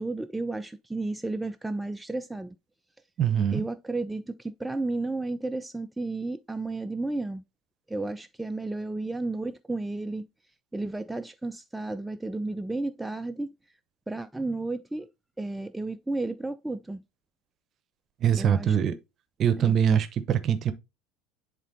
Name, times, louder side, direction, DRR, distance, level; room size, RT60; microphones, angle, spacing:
voice 1, 0.0-2.6 3.5-7.4 7.9-10.3 10.7-13.5 14.1-15.1 15.4-17.0 18.4-18.8 19.6-19.7, right 2 dB, 5° right, 0.3 m, -32 dB
voice 2, 3.2-3.7 18.2-18.9 19.4-20.7, right 8 dB, 40° right, 0.7 m, -23 dB
10.5 x 3.7 x 2.6 m
figure-of-eight pair, 70°, 0 cm